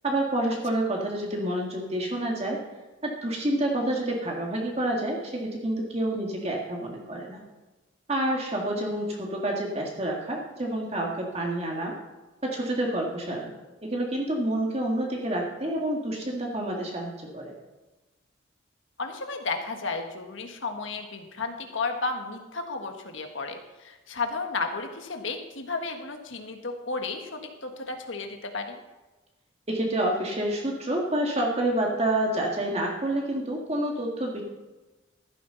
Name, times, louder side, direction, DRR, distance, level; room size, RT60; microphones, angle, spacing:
voice 1, 0.0-2.6 3.0-7.4 8.1-11.9 12.4-13.5 13.8-17.5 29.7-34.4, right 1 dB, 30° right, 0 dB, 1.9 m, -28 dB
voice 2, 19.0-28.8, left 3 dB, 80° left, 4 dB, 1.6 m, -33 dB
14.0 x 12.0 x 4.0 m, 1.2 s
head